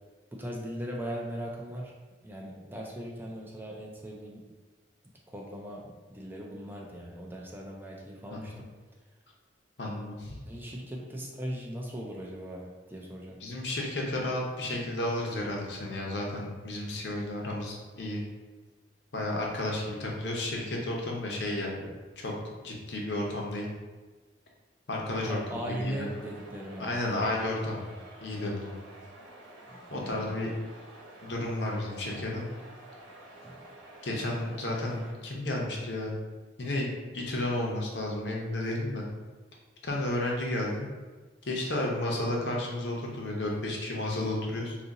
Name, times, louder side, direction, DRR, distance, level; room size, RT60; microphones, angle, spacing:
voice 1, 0.3-1.9 2.2-4.5 5.3-8.7 10.4-13.4 25.2-27.0 29.7-30.3 33.4-33.6, equal, 10° right, -2 dB, 0.4 m, -39 dB
voice 2, 9.8-10.3 13.4-18.2 19.1-21.9 22.2-22.3 22.6-23.7 24.9-26.1 26.8-27.8 28.2-28.8 29.9-30.5 31.2-32.4 34.0-36.1 36.6-36.9 37.1-39.0 39.8-40.9 41.5-44.8, left 1 dB, 65° left, -2 dB, 0.7 m, -32 dB
sound 1, 25.7-35.1, right 1 dB, 85° right, 0.9 m, -50 dB
2.7 x 2.5 x 4.0 m, 1.3 s
head